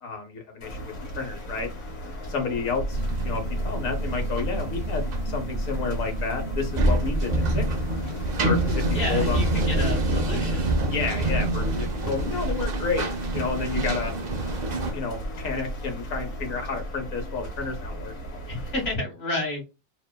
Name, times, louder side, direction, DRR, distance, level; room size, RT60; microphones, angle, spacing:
voice 1, 0.0-1.7 2.3-7.6 8.4-9.5 10.9-13.0 13.3-14.1 14.9-18.5, left 4 dB, 85° left, 1.2 m, -31 dB
sound 1, 0.6-19.0, right 1 dB, 65° left, 1.3 m, -36 dB
sound 2, 2.9-14.9, right 1 dB, 70° right, 0.4 m, -26 dB
voice 2, 8.9-10.7 18.5-19.6, left 2 dB, 45° left, 1.4 m, -30 dB
2.9 x 2.1 x 2.2 m
omnidirectional pair, 1.4 m